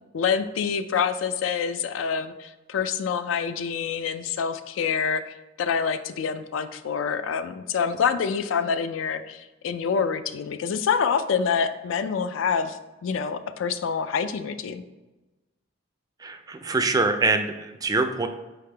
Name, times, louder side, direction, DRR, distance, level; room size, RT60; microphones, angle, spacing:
voice 1, 0.1-14.8, left 6 dB, 85° left, 10 dB, 0.3 m, -26 dB
voice 2, 16.2-18.3, right 3 dB, 20° right, 8 dB, 0.3 m, -24 dB
4.6 x 3.4 x 3.3 m, 1.1 s
head